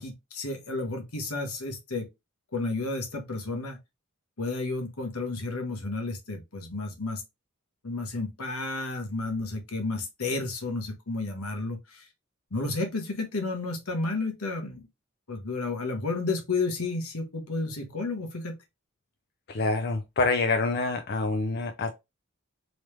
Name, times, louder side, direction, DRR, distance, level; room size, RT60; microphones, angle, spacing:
voice 1, 0.0-2.1 2.5-3.8 4.4-7.2 7.8-12.1 12.5-14.8 15.3-18.6, left 3 dB, 90° left, 1.1 m, -32 dB
voice 2, 19.5-21.9, left 3 dB, 45° left, 0.4 m, -26 dB
3.3 x 3.1 x 3.2 m
head